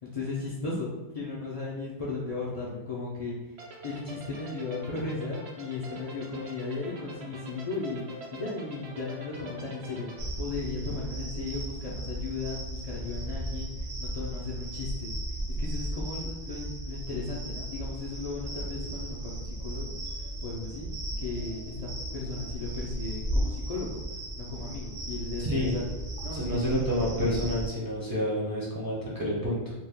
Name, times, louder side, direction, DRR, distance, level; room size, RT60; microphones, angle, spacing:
voice 1, 0.0-3.4 3.8-13.7 14.0-15.1 15.6-19.9 20.4-20.9 21.2-24.0 24.4-25.8 26.2-26.9 27.1-27.5, left 3 dB, 50° left, -6 dB, 0.5 m, -36 dB
sound 1, 3.6-10.2, right 2 dB, 85° right, 0.9 m, -44 dB
sound 2, 10.2-27.7, right 1 dB, 60° right, 0.7 m, -35 dB
voice 2, 25.4-25.8 26.3-29.7, equal, 25° right, -7 dB, 0.5 m, -29 dB
2.6 x 2.3 x 3.4 m, 1.1 s
omnidirectional pair, 1.1 m